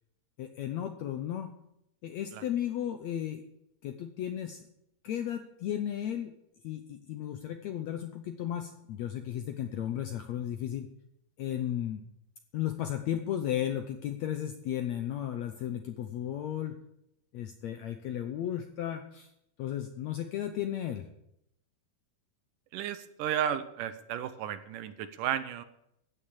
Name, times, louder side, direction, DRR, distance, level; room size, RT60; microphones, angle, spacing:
voice 1, 0.4-1.5 2.0-3.4 3.8-4.7 5.0-6.3 6.6-10.9 11.4-12.0 12.5-16.8 17.3-19.3 19.6-21.1, left 11 dB, 75° left, 7 dB, 1.6 m, -34 dB
voice 2, 22.7-25.6, right 9 dB, 75° right, 12 dB, 2.2 m, -33 dB
15.0 x 9.1 x 7.3 m, 0.80 s
omnidirectional pair, 4.1 m